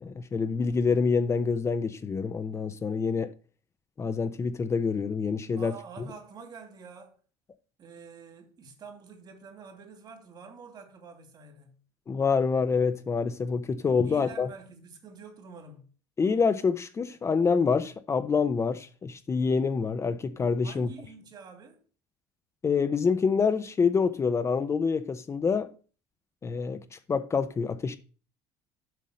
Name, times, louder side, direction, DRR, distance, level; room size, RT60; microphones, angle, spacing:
voice 1, 0.0-3.3 4.0-5.7 12.1-14.5 16.2-20.9 22.6-25.7 26.4-28.0, left 5 dB, 30° left, 0.8 m, -26 dB
voice 2, 5.6-7.2 7.8-11.8 14.0-15.9 20.6-21.8, right 5 dB, 45° right, 2.7 m, -47 dB
7.7 x 5.5 x 6.5 m
supercardioid pair, 95°, 10 cm